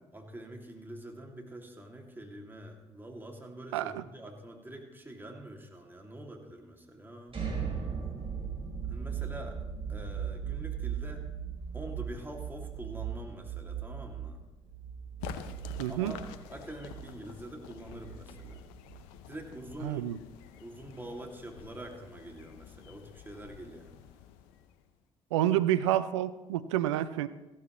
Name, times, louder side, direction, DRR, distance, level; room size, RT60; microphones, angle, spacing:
voice 1, 0.1-7.4 8.9-9.6 9.9-11.3 11.7-14.4 15.9-16.2 16.5-18.7 19.3-20.1 20.5-24.0, right 1 dB, 15° right, 1 dB, 2.5 m, -45 dB
voice 2, 3.7-4.0 15.8-16.1 19.8-20.2 25.3-27.3, right 12 dB, 85° right, 15 dB, 0.5 m, -28 dB
sound 1, 7.3-19.1, right 7 dB, 40° right, 4.8 m, -38 dB
sound 2, 15.2-25.0, left 9 dB, 75° left, 0.7 m, -48 dB
15.0 x 13.0 x 3.1 m, 1.1 s
hypercardioid pair, 50°, 15 cm